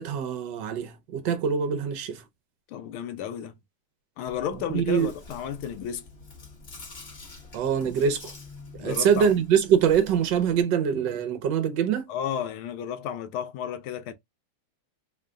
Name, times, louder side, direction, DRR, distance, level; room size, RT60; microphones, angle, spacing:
voice 1, 0.0-2.2 4.7-5.1 7.5-8.3 8.8-12.0, right 7 dB, 65° right, 1.3 m, -24 dB
voice 2, 2.7-3.5 4.2-6.0 8.8-9.3 12.1-14.1, left 9 dB, 75° left, 1.5 m, -32 dB
Chewing mastication, 4.3-10.6, left 3 dB, 35° left, 1.2 m, -46 dB
3.7 x 2.2 x 3.6 m
omnidirectional pair, 2.4 m